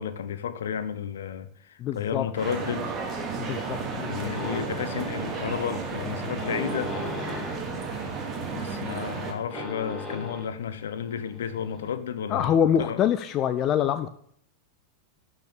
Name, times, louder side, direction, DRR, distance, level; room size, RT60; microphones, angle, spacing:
voice 1, 0.0-2.9 3.9-7.0 8.0-8.1 8.5-13.0, left 8 dB, 65° left, 12 dB, 1.1 m, -32 dB
voice 2, 1.8-2.3 3.4-4.3 12.3-14.1, left 9 dB, 35° left, 11 dB, 0.6 m, -25 dB
sound 1, 2.3-9.3, right 4 dB, 25° right, 2.6 m, -33 dB
sound 2, 4.3-11.9, left 2 dB, 10° left, 4.1 m, -39 dB
12.0 x 6.2 x 7.2 m, 0.66 s
figure-of-eight pair, 90°, 0 cm